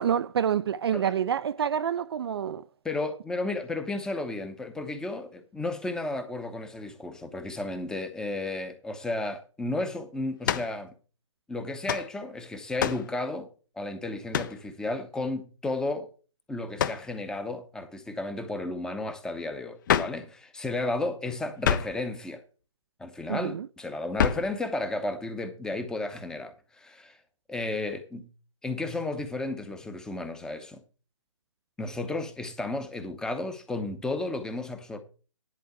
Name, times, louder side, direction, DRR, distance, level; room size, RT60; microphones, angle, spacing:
voice 1, 0.0-2.6 23.3-23.7, right 8 dB, 50° right, 0.4 m, -27 dB
voice 2, 2.8-10.9 11.5-13.5 13.8-16.1 16.5-22.4 23.0-27.2 27.5-28.3 28.6-30.8 31.8-35.0, left 2 dB, 5° left, 0.8 m, -33 dB
sound 1, 10.4-10.8 11.9-12.1 12.8-13.1 14.3-14.6 16.8-17.1 19.9-20.2 21.6-22.0 24.2-24.5, left 9 dB, 40° left, 0.6 m, -27 dB
10.5 x 4.5 x 7.9 m
figure-of-eight pair, 140°, 16 cm